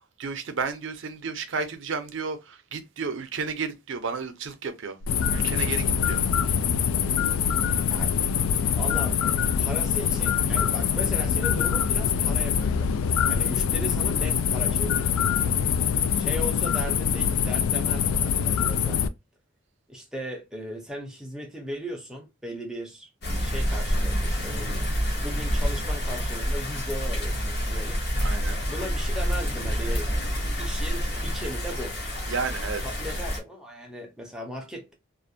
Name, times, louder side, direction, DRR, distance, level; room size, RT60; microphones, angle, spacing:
voice 1, 0.2-5.0 5.3-6.2 28.2-28.6 32.3-32.9, right 5 dB, 65° right, 0.5 m, -32 dB
sound 1, 5.0-19.1, left 7 dB, 90° left, 0.3 m, -24 dB
voice 2, 8.7-9.2 9.6-12.9 13.3-15.2 16.2-19.0 19.9-23.1 23.4-24.9 25.2-28.0 28.7-30.1 30.6-32.0 33.0-34.9, equal, 5° right, 0.5 m, -37 dB
sound 2, 23.2-33.4, equal, 50° left, 0.8 m, -28 dB
2.4 x 2.1 x 2.6 m
head